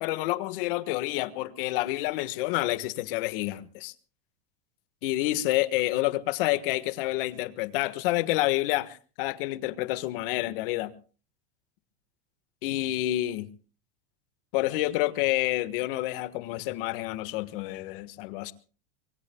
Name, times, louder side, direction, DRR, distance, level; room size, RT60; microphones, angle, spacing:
voice 1, 0.0-3.9 5.0-10.9 12.6-13.5 14.5-18.5, left 17 dB, 60° left, 1.5 m, -28 dB
25.5 x 23.0 x 2.3 m
supercardioid pair, 160°, 31 cm